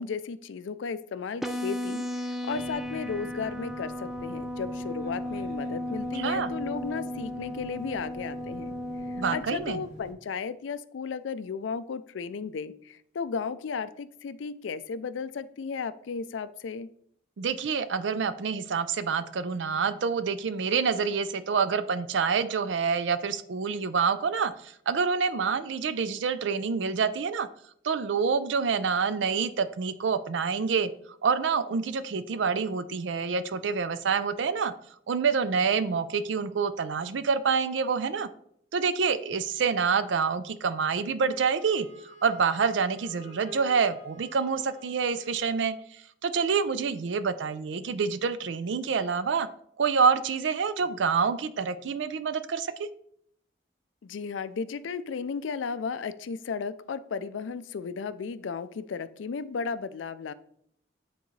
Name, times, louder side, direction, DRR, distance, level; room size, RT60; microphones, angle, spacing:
voice 1, 0.0-8.7 9.1-16.9 54.0-60.3, left 5 dB, 85° left, 14 dB, 0.4 m, -34 dB
sound 1, 1.4-9.4, left 1 dB, ahead, 0.4 m, -35 dB
sound 2, 2.5-10.1, equal, 40° right, 1.7 m, -48 dB
voice 2, 6.1-6.5 9.2-9.8 17.4-27.5 27.8-30.9 31.2-34.7 35.1-38.3 38.7-49.5 49.8-52.9, right 5 dB, 75° right, 13 dB, 0.4 m, -27 dB
Wind instrument woodwind instrument, 41.3-45.8, equal, 35° left, 1.3 m, -50 dB
9.3 x 3.8 x 3.2 m, 0.68 s
head